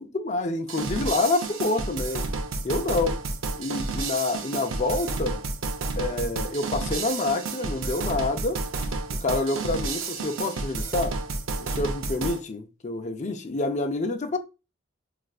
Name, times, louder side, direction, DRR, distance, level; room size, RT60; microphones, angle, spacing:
voice 1, 0.0-2.3 2.6-3.2 3.6-5.4 6.0-8.6 9.1-11.2 11.6-14.4, left 2 dB, 35° left, 0.5 m, -27 dB
sound 1, 0.7-12.4, right 3 dB, 85° right, 0.6 m, -31 dB
4.2 x 2.5 x 2.3 m
head